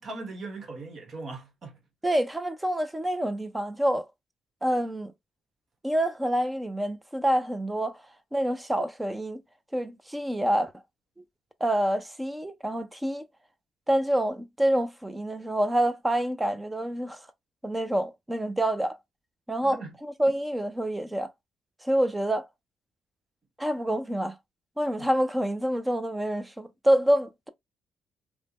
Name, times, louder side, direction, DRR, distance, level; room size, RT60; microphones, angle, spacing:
voice 1, 0.0-1.8 19.6-19.9 25.0-25.1, right 3 dB, 50° right, 1.3 m, -39 dB
voice 2, 2.0-4.1 4.6-5.1 5.8-8.0 8.3-9.4 9.7-10.7 11.6-13.2 13.9-17.3 17.6-19.0 19.5-21.3 21.8-22.5 23.6-24.4 24.8-27.5, right 1 dB, 10° right, 0.5 m, -27 dB
3.3 x 2.1 x 2.9 m
cardioid pair, 90°, 0 cm